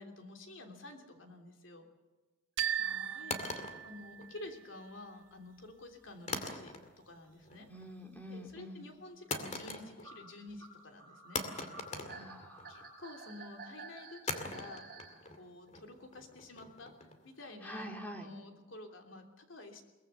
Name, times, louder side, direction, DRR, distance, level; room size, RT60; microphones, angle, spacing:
voice 1, 0.0-1.9 3.1-6.7 7.0-7.7 8.3-11.4 11.9-12.3 12.7-14.8 15.4-19.8, left 2 dB, 70° left, 4 dB, 3.1 m, -50 dB
sound 1, 2.6-4.5, right 9 dB, 70° right, 1.4 m, -37 dB
voice 2, 2.7-3.5 7.7-8.9 12.1-12.8 17.6-18.3, equal, 10° left, 3 dB, 2.7 m, -47 dB
sound 2, 3.3-4.7 6.3-7.1 7.4-7.9 9.3-10.2 10.5-10.6 11.3-12.9 14.3-17.3, left 3 dB, 35° left, 2.4 m, -41 dB
sound 3, 6.1-6.2 6.5-6.7 7.4-7.5 7.7-7.8 8.5-8.7 9.2-9.3 10.0-15.2, right 3 dB, 45° right, 6.7 m, -51 dB
22.5 x 20.0 x 6.9 m, 1.2 s
head